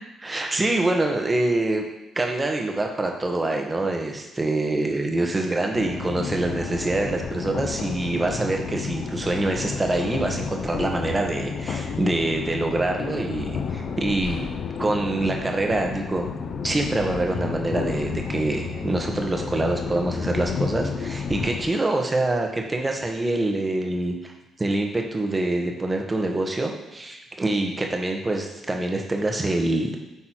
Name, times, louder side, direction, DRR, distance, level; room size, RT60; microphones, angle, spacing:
voice 1, 0.2-1.8 2.1-14.4 14.8-16.3 16.6-24.3 24.6-30.0, right 2 dB, 20° right, 2 dB, 1.2 m, -25 dB
sound 1, 5.7-21.7, left 6 dB, 60° left, 0.5 m, -31 dB
8.2 x 4.2 x 4.5 m, 0.97 s
cardioid pair, 90°, 0 cm